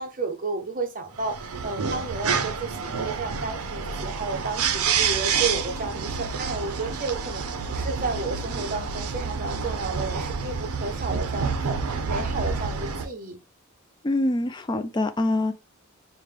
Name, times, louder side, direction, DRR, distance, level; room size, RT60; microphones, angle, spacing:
voice 1, 0.0-13.4, right 3 dB, 40° right, 0.7 m, -32 dB
sound 1, 1.2-13.1, right 5 dB, 80° right, 0.5 m, -28 dB
voice 2, 14.0-15.5, left 2 dB, 20° left, 0.3 m, -24 dB
5.1 x 2.1 x 3.2 m
head